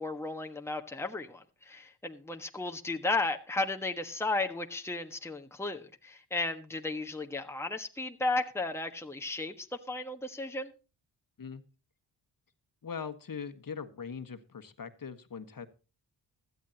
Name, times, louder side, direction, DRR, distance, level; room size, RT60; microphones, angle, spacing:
voice 1, 0.0-10.7, left 2 dB, 5° left, 1.4 m, -34 dB
voice 2, 12.8-15.7, left 6 dB, 45° left, 1.6 m, -41 dB
16.0 x 12.5 x 2.9 m
supercardioid pair, 50°, 46 cm